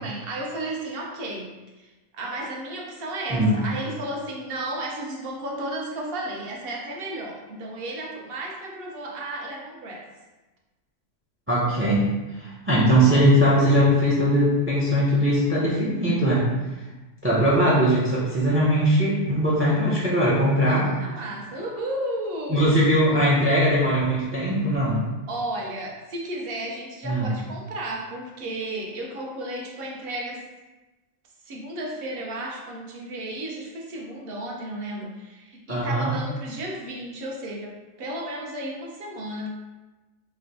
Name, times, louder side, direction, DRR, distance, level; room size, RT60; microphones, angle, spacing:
voice 1, 0.0-1.5 1.8-10.0 19.6-19.8 20.7-22.8 25.3-30.4 31.5-39.5, right 1 dB, 55° right, -1 dB, 0.8 m, -33 dB
voice 2, 11.5-12.1 12.4-16.4 17.2-20.9 22.5-25.0 27.0-27.3 35.7-36.1, equal, 20° right, -6 dB, 0.3 m, -20 dB
3.0 x 2.2 x 3.9 m, 1.1 s
omnidirectional pair, 1.3 m